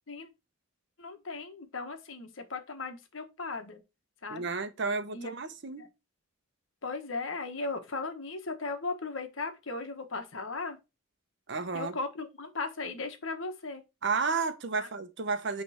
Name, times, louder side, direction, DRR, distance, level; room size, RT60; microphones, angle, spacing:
voice 1, 1.0-3.8 4.2-4.5 5.1-5.3 5.8-5.9 6.8-10.8 11.7-13.8 14.8-14.9, left 3 dB, 70° left, 1.3 m, -37 dB
voice 2, 4.3-5.9 11.5-11.9 14.0-15.6, right 4 dB, 60° right, 0.9 m, -32 dB
9.1 x 3.4 x 4.3 m
head